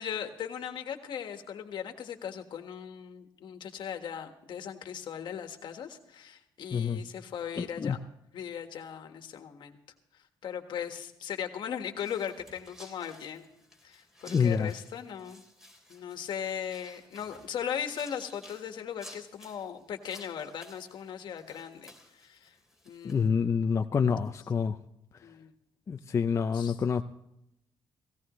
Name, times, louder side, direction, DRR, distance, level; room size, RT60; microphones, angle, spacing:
voice 1, 0.0-8.0 8.3-9.8 10.1-13.5 13.8-15.4 15.9-22.5 22.8-23.4 25.2-25.5 26.5-26.7, left 8 dB, 65° left, 6 dB, 1.6 m, -38 dB
voice 2, 6.7-7.0 7.6-8.0 14.3-14.7 23.0-24.8 25.9-27.0, left 6 dB, 35° left, 6 dB, 0.5 m, -27 dB
sound 1, 12.0-23.3, left 1 dB, 5° right, 3.4 m, -54 dB
17.0 x 17.0 x 3.1 m, 0.80 s
cardioid pair, 110°, 8 cm